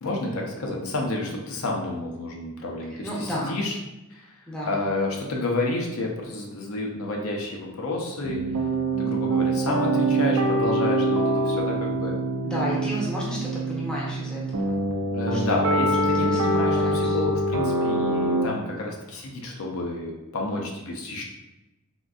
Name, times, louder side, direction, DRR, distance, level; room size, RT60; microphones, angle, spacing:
voice 1, 0.0-3.8 4.1-4.3 4.7-8.4 9.0-12.2 15.1-21.2, left 2 dB, 70° left, 0 dB, 0.6 m, -30 dB
voice 2, 3.0-3.6 4.5-4.8 12.4-14.8 15.2-15.8 16.1-17.2, equal, 5° left, -6 dB, 0.7 m, -32 dB
sound 1, 8.2-18.5, right 1 dB, 80° right, 0.4 m, -24 dB
3.6 x 2.5 x 2.3 m, 1.0 s
head